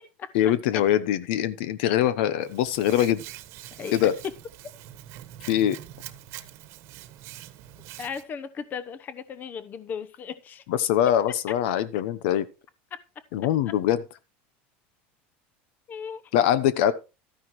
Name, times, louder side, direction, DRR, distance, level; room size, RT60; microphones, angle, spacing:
voice 1, 0.3-3.2 3.9-4.1 5.5-5.8 10.7-12.5 13.3-14.0 16.3-16.9, left 11 dB, 75° left, 0.9 m, -23 dB
Hands, 2.4-8.2, right 13 dB, 55° right, 1.3 m, -44 dB
voice 2, 3.8-4.1 8.0-10.6 12.9-13.0 15.9-16.2, left 6 dB, 30° left, 0.9 m, -36 dB
13.0 x 10.0 x 3.1 m
supercardioid pair, 135°, 6 cm